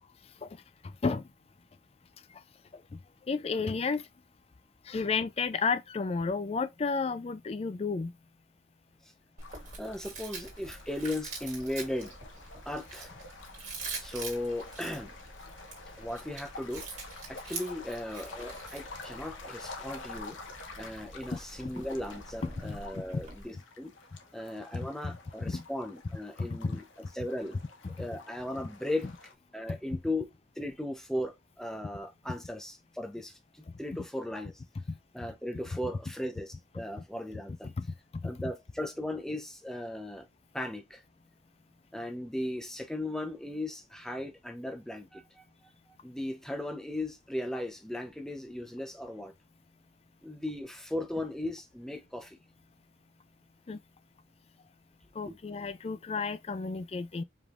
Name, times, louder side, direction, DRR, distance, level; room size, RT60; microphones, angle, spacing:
voice 1, 3.3-4.0 4.9-8.1 21.3-21.4 22.6-23.2 25.0-25.6 26.4-26.8 27.8-28.1 29.7-29.8 33.9-34.0 34.9-35.0 37.6-37.9 38.1-38.3 53.7-53.8 55.2-57.2, left 4 dB, 30° left, 0.3 m, -32 dB
sound 1, 9.4-29.3, left 3 dB, 80° left, 0.9 m, -49 dB
Chewing mastication, 9.4-23.4, right 3 dB, 35° right, 1.9 m, -45 dB
voice 2, 9.8-12.1 12.7-13.2 14.0-15.1 16.0-16.9 17.3-20.4 20.8-23.9 24.3-26.8 27.1-27.6 27.9-29.1 29.5-30.3 30.6-34.5 35.1-37.7 38.2-40.3 40.5-41.0 41.9-45.4 46.0-49.3 50.2-52.4 55.2-55.4 57.2-57.3, left 1 dB, 5° left, 0.7 m, -37 dB
4.9 x 3.5 x 2.5 m
head